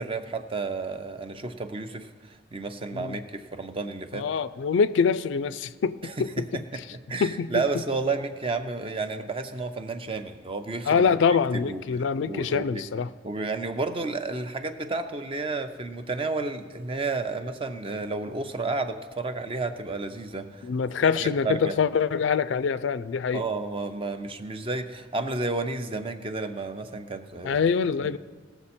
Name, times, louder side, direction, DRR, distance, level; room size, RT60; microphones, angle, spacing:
voice 1, 0.0-4.3 6.0-6.6 6.9-11.1 11.5-11.8 12.2-12.9 13.2-20.7 21.2-21.8 23.3-27.6 28.0-28.1, right 3 dB, 30° right, 9 dB, 0.5 m, -31 dB
voice 2, 4.1-6.6 7.2-7.8 10.9-13.1 20.6-23.4 27.4-28.2, left 6 dB, 70° left, 15 dB, 0.3 m, -25 dB
18.0 x 6.9 x 4.3 m, 1.5 s
head